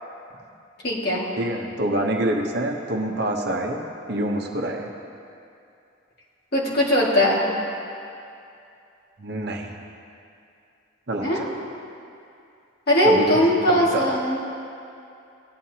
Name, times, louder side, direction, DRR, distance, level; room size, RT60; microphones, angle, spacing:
voice 1, 0.8-1.3 6.5-7.4 11.2-11.5 12.9-14.4, equal, 50° left, -5 dB, 2.1 m, -20 dB
voice 2, 1.4-4.9 9.2-9.7 11.1-11.5 13.0-13.3 13.7-14.1, right 1 dB, 55° right, 1 dB, 1.0 m, -26 dB
18.5 x 9.2 x 2.9 m, 2.6 s
head